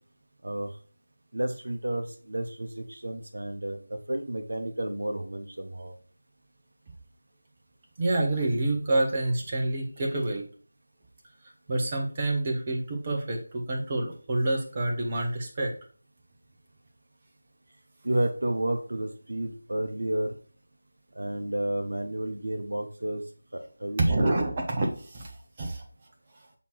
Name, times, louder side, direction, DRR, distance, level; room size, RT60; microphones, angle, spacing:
voice 1, 1.3-5.9 18.0-20.3 21.1-23.2 23.5-24.5, right 1 dB, 60° right, 5 dB, 0.8 m, -31 dB
voice 2, 8.0-10.4 11.7-15.7 24.0-25.3 25.6-25.8, right 2 dB, 25° right, 0 dB, 1.0 m, -27 dB
6.9 x 3.0 x 4.6 m, 0.42 s
figure-of-eight pair, 165°, 0 cm